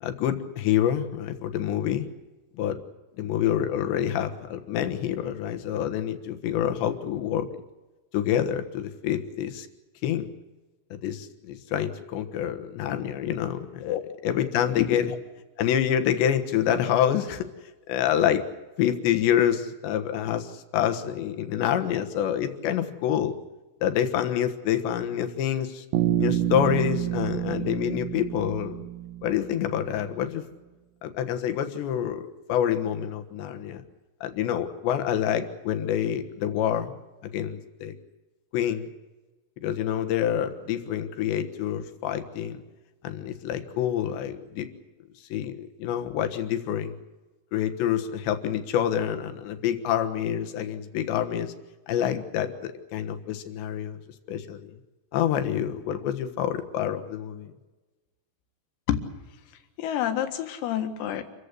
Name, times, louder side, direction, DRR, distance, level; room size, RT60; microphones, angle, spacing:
voice 1, 0.0-2.1 2.6-2.8 3.2-7.5 8.1-9.7 10.0-10.3 10.9-14.0 14.2-15.1 15.6-17.5 17.9-18.4 18.8-23.4 23.8-25.8 26.2-28.8 29.2-30.4 31.0-33.8 34.2-36.9 37.3-37.9 38.5-38.9 39.6-42.6 43.0-44.7 45.3-47.0 47.5-51.5 51.9-54.0 54.3-54.7 55.1-57.5, left 10 dB, 70° left, 7 dB, 3.3 m, -27 dB
Bass guitar, 25.9-29.8, right 12 dB, 65° right, 2.4 m, -28 dB
voice 2, 59.8-61.2, left 11 dB, 85° left, 7 dB, 4.5 m, -28 dB
27.5 x 15.0 x 8.2 m, 1.2 s
omnidirectional pair, 5.9 m